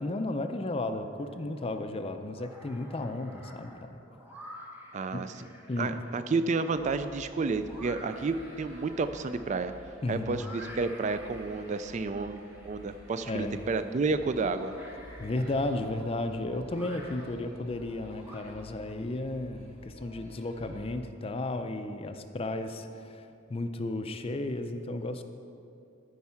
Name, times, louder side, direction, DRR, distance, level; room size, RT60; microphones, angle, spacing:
voice 1, 0.0-4.0 5.1-5.2 5.7-5.9 10.0-10.4 13.3-13.6 15.2-25.2, left 2 dB, 30° left, 7 dB, 0.4 m, -34 dB
sound 1, 1.2-1.8 2.2-18.9, equal, 10° right, 1.0 m, -51 dB
voice 2, 4.9-5.3 5.8-9.7 10.1-14.7, right 4 dB, 40° right, 11 dB, 0.3 m, -31 dB
sound 2, 6.7-21.0, equal, 90° right, 1.9 m, -51 dB
14.0 x 4.7 x 5.6 m, 2.6 s
head